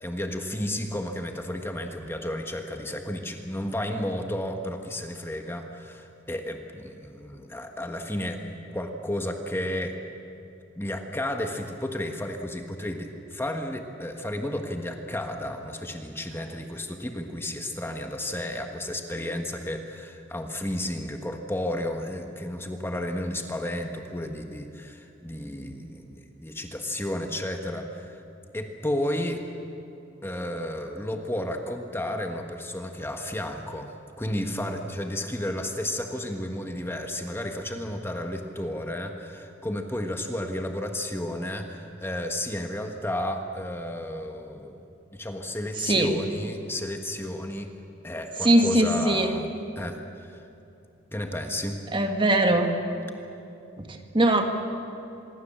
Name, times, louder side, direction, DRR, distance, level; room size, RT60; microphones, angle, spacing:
voice 1, 0.0-10.0 10.8-28.2 28.5-29.4 30.2-33.9 34.2-44.8 45.1-47.7 48.0-49.5 49.7-50.0 50.3-50.4 51.1-51.8, left 1 dB, 10° left, 4 dB, 1.4 m, -32 dB
voice 2, 45.8-46.1 48.4-49.4 51.9-52.7 53.8-54.4, right 1 dB, 25° right, 5 dB, 1.7 m, -21 dB
25.5 x 22.5 x 7.4 m, 2.8 s
head